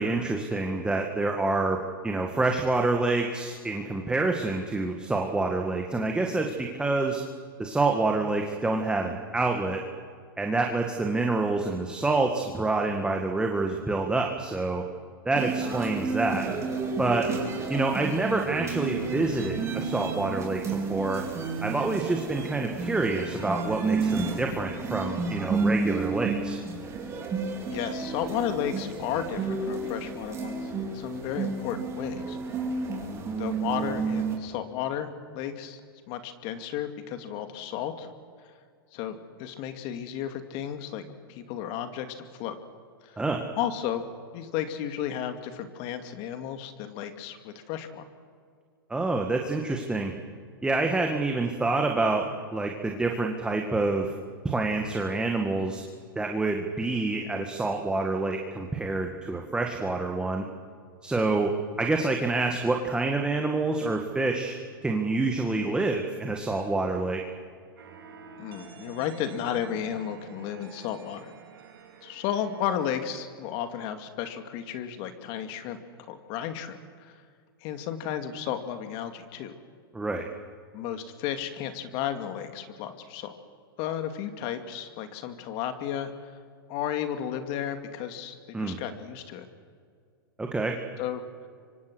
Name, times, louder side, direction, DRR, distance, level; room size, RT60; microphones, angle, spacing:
voice 1, 0.0-7.2 7.6-9.8 10.4-14.9 15.3-16.5 17.0-17.3 17.7-21.2 21.6-26.6 43.2-43.4 48.9-50.1 50.6-54.1 54.4-55.8 56.2-60.4 61.0-64.6 64.8-67.2 79.9-80.3 88.5-88.8 90.4-90.8, right 3 dB, 10° right, 2 dB, 2.0 m, -27 dB
sound 1, 15.3-34.4, right 4 dB, 25° right, 4.8 m, -31 dB
voice 2, 27.7-32.4 33.4-35.8 36.1-38.1 38.9-41.0 41.3-42.6 43.0-43.2 43.6-44.0 44.3-48.0 68.4-71.3 72.0-75.8 76.1-77.2 77.6-79.5 80.7-83.3 83.8-86.1 86.7-89.5 91.0-91.2, left 10 dB, 50° left, 7 dB, 2.4 m, -33 dB
sound 2, 67.8-73.2, right 6 dB, 80° right, 4.2 m, -48 dB
28.0 x 25.0 x 6.4 m, 2.2 s
hypercardioid pair, 115°, 12 cm